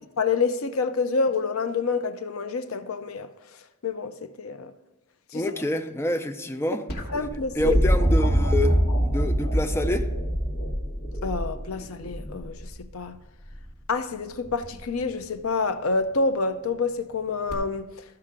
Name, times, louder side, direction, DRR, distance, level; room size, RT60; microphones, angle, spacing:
voice 1, 0.2-3.3 3.8-4.7 5.3-5.4 7.1-7.8 11.2-13.2 13.9-17.9, left 4 dB, 80° left, 0.6 m, -27 dB
voice 2, 5.3-6.8 7.6-10.1, left 1 dB, 10° left, 0.4 m, -27 dB
sound 1, 6.9-12.8 14.4-14.9 17.5-17.6, equal, 45° left, 2.0 m, -24 dB
13.5 x 5.6 x 3.7 m
head